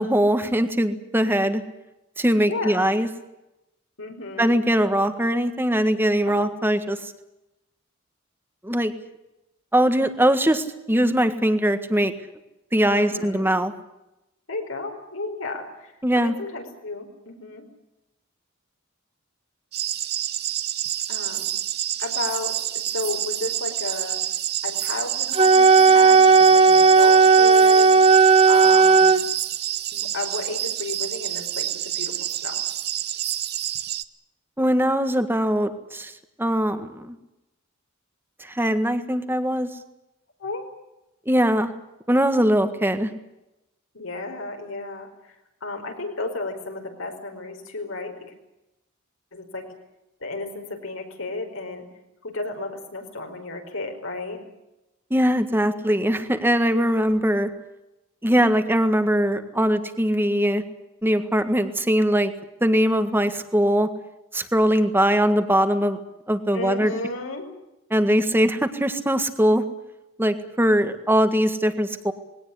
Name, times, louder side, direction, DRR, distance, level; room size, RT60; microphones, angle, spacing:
voice 1, 0.0-1.6 2.2-3.1 4.4-7.1 8.6-8.9 9.7-12.1 12.7-13.7 16.0-16.3 34.6-36.1 36.4-37.1 38.4-39.7 41.2-41.7 42.1-43.1 55.1-57.5 58.2-60.6 61.0-62.3 62.6-63.9 64.3-66.0 66.3-66.9 67.9-69.6 70.2-72.1, equal, 10° right, 9 dB, 1.7 m, -21 dB
voice 2, 2.4-3.0 4.0-4.5 6.3-6.5 12.9-13.5 14.5-17.6 21.1-21.5 22.0-24.2 24.6-28.0 28.4-29.2 29.9-32.6 40.4-40.7 43.9-45.3 45.6-48.3 49.3-49.7 50.2-51.8 52.2-54.4 66.5-67.5, left 2 dB, 80° left, 3 dB, 5.0 m, -33 dB
sound 1, 19.7-34.0, right 12 dB, 50° right, 1.0 m, -28 dB
Wind instrument woodwind instrument, 25.3-29.2, right 4 dB, 30° right, 0.9 m, -14 dB
20.5 x 18.0 x 9.9 m, 0.93 s
head